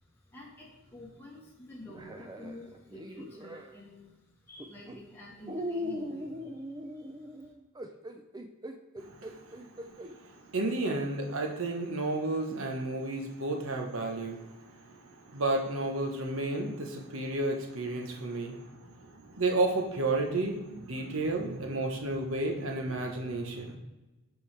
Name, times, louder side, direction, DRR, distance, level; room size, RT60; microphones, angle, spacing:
voice 1, 0.3-7.5, left 1 dB, 10° left, -4 dB, 1.0 m, -49 dB
sound 1, 1.9-3.8 4.6-4.9 5.5-10.1 10.8-10.9 12.5-12.7, left 1 dB, 15° right, 0.4 m, -40 dB
voice 2, 9.0-9.6 9.9-23.8, right 2 dB, 65° right, 3 dB, 1.1 m, -32 dB
11.0 x 4.6 x 3.3 m, 1.1 s
head